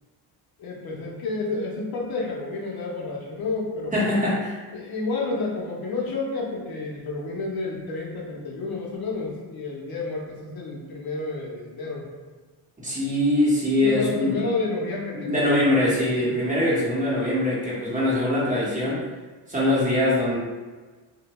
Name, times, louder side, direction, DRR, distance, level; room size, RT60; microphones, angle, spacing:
voice 1, 0.6-4.1 4.7-12.1 13.8-15.5 16.2-16.4, left 3 dB, 60° left, -2 dB, 0.7 m, -30 dB
voice 2, 3.9-4.6 12.8-14.4 15.1-19.0 19.5-20.4, left 1 dB, 20° right, -7 dB, 0.9 m, -22 dB
2.5 x 2.1 x 2.9 m, 1.3 s
cardioid pair, 100°, 43 cm